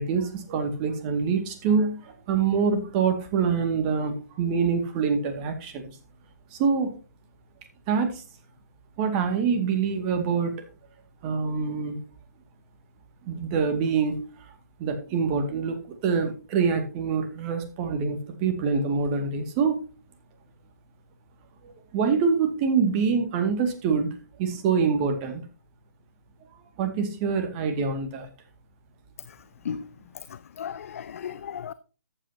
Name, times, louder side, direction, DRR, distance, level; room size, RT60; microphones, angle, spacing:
voice 1, 0.0-5.9 6.5-6.9 7.9-8.2 9.0-10.5 11.2-12.0 13.2-14.2 14.8-19.8 21.9-24.1 24.4-25.4 26.8-28.3, right 5 dB, 30° right, 2.1 m, -25 dB
voice 2, 30.6-31.7, left 8 dB, 50° left, 0.6 m, -34 dB
14.0 x 8.6 x 2.8 m
figure-of-eight pair, 135°, 10 cm